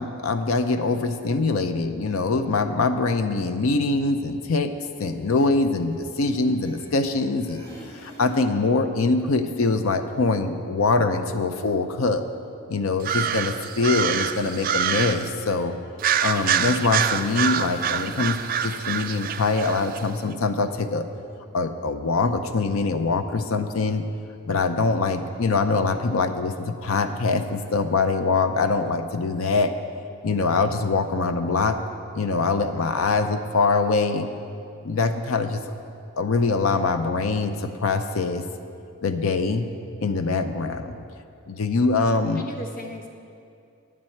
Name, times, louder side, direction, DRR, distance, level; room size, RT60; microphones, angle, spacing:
voice 1, 0.0-7.6 8.0-12.2 12.7-15.7 16.2-21.0 21.5-24.0 24.5-29.7 30.2-31.8 32.1-34.3 34.8-35.6 36.2-38.4 39.0-39.7 40.0-41.0 41.5-42.5, left 3 dB, 85° left, 9 dB, 0.6 m, -23 dB
sound 1, 4.8-5.0 5.3-7.1 7.4-8.5, equal, 15° left, 1.5 m, -46 dB
sound 2, 13.0-15.3 16.0-20.0, right 8 dB, 40° right, 0.3 m, -26 dB
voice 2, 42.1-43.1, equal, 40° left, 2 dB, 1.1 m, -38 dB
9.5 x 7.5 x 7.8 m, 2.5 s
head